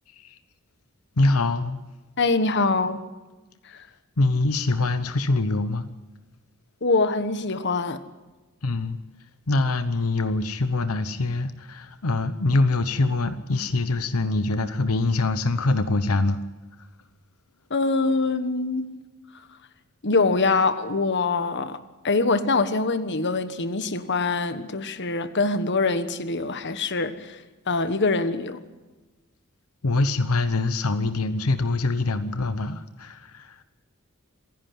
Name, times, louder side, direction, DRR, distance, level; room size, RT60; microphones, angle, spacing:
voice 1, 0.1-0.4 1.2-1.8 4.2-5.9 8.6-9.0 9.5-16.4 29.8-33.6, left 2 dB, 80° left, 1.0 m, -24 dB
voice 2, 2.2-3.0 3.7-3.8 6.8-8.0 17.7-18.9 20.0-21.8 22.0-27.4 27.7-28.6, left 3 dB, 55° left, 1.3 m, -24 dB
26.5 x 11.0 x 9.5 m
head